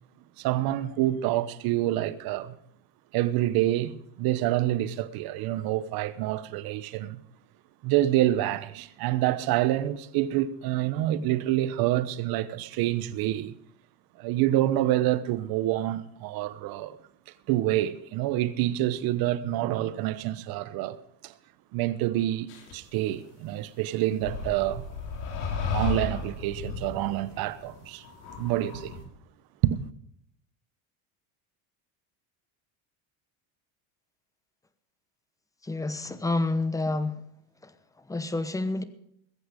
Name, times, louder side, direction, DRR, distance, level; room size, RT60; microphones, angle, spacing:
voice 1, 0.4-2.6 3.1-7.2 7.8-13.6 14.2-17.0 17.3-21.3 21.7-24.8 25.7-28.0 28.4-29.0 29.6-29.8, right 14 dB, 55° right, 1.1 m, -27 dB
sound 1, 22.5-22.7 24.2-29.0, left 5 dB, 65° left, 3.9 m, -34 dB
voice 2, 35.6-37.2 37.6-38.8, left 2 dB, 10° left, 1.0 m, -29 dB
21.5 x 8.2 x 5.1 m
cardioid pair, 130°, 42 cm